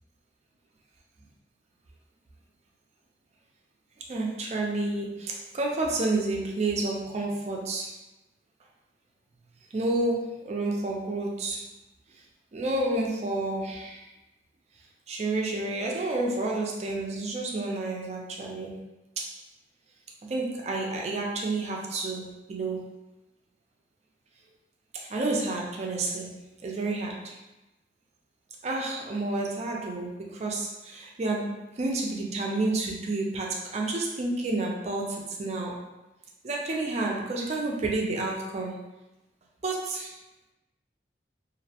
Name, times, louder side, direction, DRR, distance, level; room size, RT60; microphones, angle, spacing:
voice 1, 4.1-8.0 9.7-11.7 12.1-12.2 12.5-14.1 15.1-18.8 19.2-19.4 20.2-22.9 24.9-27.4 28.6-35.9 36.4-38.9 39.6-40.2, right 2 dB, 35° right, -1 dB, 0.4 m, -30 dB
2.5 x 2.0 x 2.7 m, 1.0 s
head